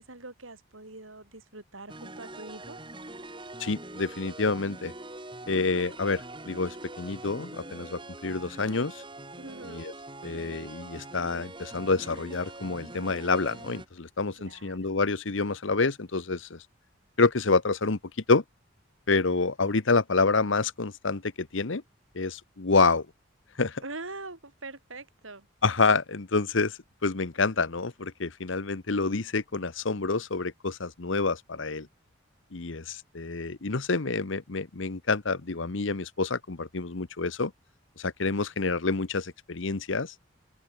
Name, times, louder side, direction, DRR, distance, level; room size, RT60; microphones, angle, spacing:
voice 1, 0.0-2.8 9.4-9.9 14.4-14.9 23.8-25.5, right 2 dB, 80° right, 6.9 m, -43 dB
sound 1, 1.9-13.8, right 2 dB, 25° right, 6.9 m, -43 dB
voice 2, 3.6-4.9 5.5-9.0 9.6-9.9 10.2-16.6 17.2-18.0 18.3-18.4 19.1-21.8 22.1-23.1 23.6-23.8 25.6-31.9 32.5-37.5 38.0-40.1, left 3 dB, 75° left, 1.1 m, -28 dB
open air
head